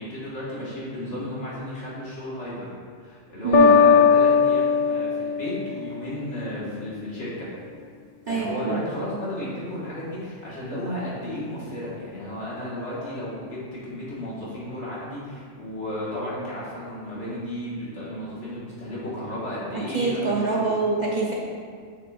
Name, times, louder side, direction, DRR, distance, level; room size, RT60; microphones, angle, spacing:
voice 1, 0.0-2.7 3.0-7.5 8.3-20.7, left 1 dB, 70° left, -8 dB, 2.1 m, -33 dB
voice 2, 3.4-3.8 8.3-8.8 19.7-21.3, right 3 dB, 40° right, -4 dB, 0.8 m, -25 dB
sound 1, 3.5-6.4, left 5 dB, 55° left, 0.6 m, -19 dB
6.8 x 5.9 x 2.5 m, 2.1 s
omnidirectional pair, 1.2 m